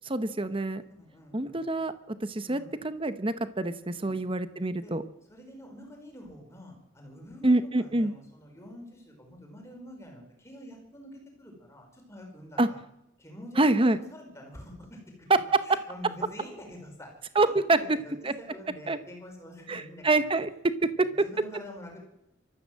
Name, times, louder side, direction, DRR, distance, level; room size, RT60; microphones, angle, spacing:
voice 1, 0.1-0.8 1.3-5.0 7.4-8.1 12.6-12.7 13.6-14.0 17.3-18.0 18.2-18.3 18.9-19.0 19.7-21.1, right 2 dB, 25° right, 12 dB, 0.9 m, -26 dB
voice 2, 1.0-1.6 2.4-2.8 4.0-4.2 4.8-5.0 5.3-12.8 13.2-20.3 21.0-22.0, left 1 dB, 15° left, 1 dB, 5.0 m, -47 dB
25.5 x 13.5 x 7.6 m, 0.84 s
head